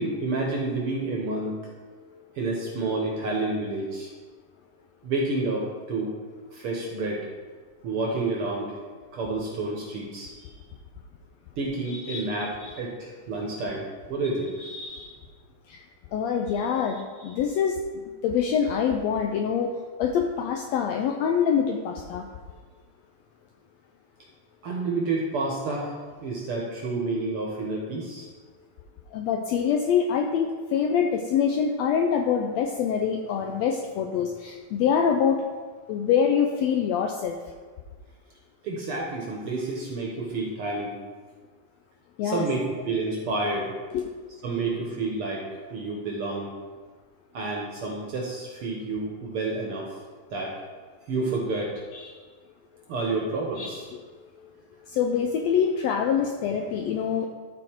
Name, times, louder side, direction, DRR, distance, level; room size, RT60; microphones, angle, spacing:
voice 1, 0.0-1.6 2.4-4.1 5.0-6.1 6.5-7.3 7.8-8.7 9.1-10.4 11.6-14.5 24.6-28.3 38.6-41.0 42.2-43.8 44.4-46.5 47.3-50.0 50.3-50.6 51.1-51.7 52.9-53.9, right 3 dB, 60° right, -2 dB, 1.6 m, -29 dB
voice 2, 11.9-12.3 12.6-12.8 14.6-15.2 15.7-15.8 16.1-17.8 18.2-19.7 20.0-22.2 29.1-35.4 35.9-37.4 42.2-42.4 43.9-44.1 51.9-52.2 53.6-54.0 54.9-57.3, left 7 dB, 85° left, 3 dB, 1.5 m, -25 dB
12.5 x 4.2 x 4.4 m, 1.5 s
omnidirectional pair, 3.5 m